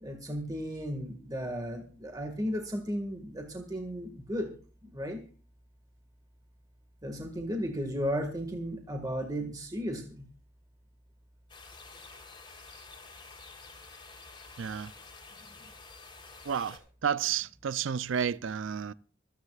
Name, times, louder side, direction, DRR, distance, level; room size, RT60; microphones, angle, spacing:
voice 1, 0.0-4.5 4.8-5.2 7.0-10.3, equal, 20° right, 1.8 m, -35 dB
sound 1, 11.5-16.8, left 4 dB, 25° left, 3.5 m, -50 dB
voice 2, 14.6-14.9 16.4-18.9, right 7 dB, 75° right, 0.5 m, -31 dB
26.0 x 9.9 x 2.4 m
head